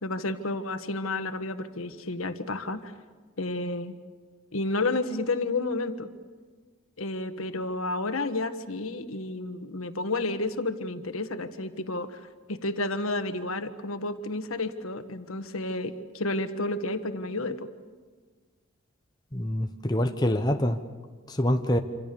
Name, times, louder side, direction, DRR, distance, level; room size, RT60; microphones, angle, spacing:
voice 1, 0.0-2.9 3.4-4.0 4.5-6.1 7.0-17.6, left 2 dB, 85° left, 9 dB, 1.5 m, -31 dB
voice 2, 19.3-20.8 21.3-21.8, left 1 dB, 20° left, 6 dB, 1.0 m, -25 dB
27.0 x 26.5 x 7.0 m, 1.4 s
head